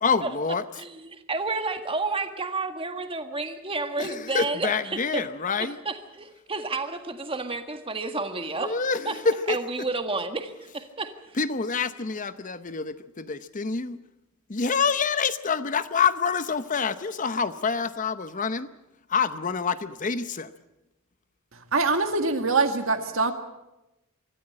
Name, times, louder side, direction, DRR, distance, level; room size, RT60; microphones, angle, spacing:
voice 1, 0.0-0.6 4.0-5.8 8.5-9.6 11.3-14.0 14.5-18.7 19.1-20.5, left 5 dB, 35° left, 13 dB, 0.8 m, -27 dB
voice 2, 0.8-4.7 5.1-5.2 5.8-8.7 9.0-9.1 9.5-11.1, right 3 dB, 25° right, 7 dB, 1.7 m, -30 dB
voice 3, 21.7-23.3, right 3 dB, 65° right, 7 dB, 2.0 m, -23 dB
24.5 x 14.0 x 8.6 m, 0.96 s
head